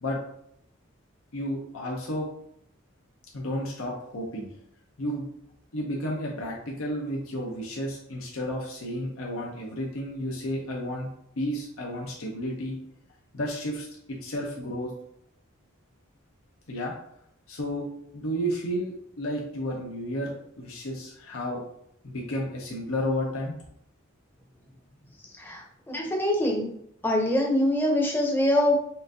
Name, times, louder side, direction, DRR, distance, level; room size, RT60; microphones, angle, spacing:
voice 1, 1.3-2.3 3.3-4.5 5.0-5.3 5.7-11.1 11.4-12.8 13.3-14.9 16.7-16.9 17.5-17.9 18.1-21.6 22.0-23.5, equal, 75° left, -2 dB, 0.8 m, -32 dB
voice 2, 25.4-26.7 27.0-28.9, left 1 dB, 10° left, 0 dB, 0.7 m, -24 dB
5.7 x 2.6 x 2.7 m, 0.72 s
head